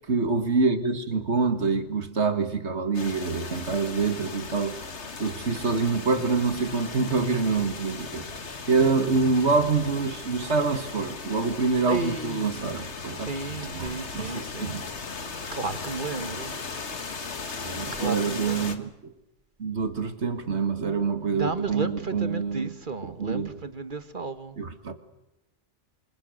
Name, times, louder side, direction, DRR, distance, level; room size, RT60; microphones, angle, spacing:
voice 1, 0.1-4.8 5.2-8.3 8.6-14.9 15.2-15.3 16.2-16.3 17.6-18.9 19.6-22.7 23.0-23.5 24.6-24.9, right 4 dB, 70° right, 9 dB, 2.2 m, -26 dB
sound 1, 2.9-18.8, left 4 dB, 70° left, 2.0 m, -37 dB
voice 2, 11.9-12.7 13.2-14.8 15.3-16.6 17.9-18.9 21.3-24.6, right 3 dB, 45° right, 11 dB, 1.5 m, -33 dB
28.5 x 26.0 x 6.5 m, 0.94 s
omnidirectional pair, 1.2 m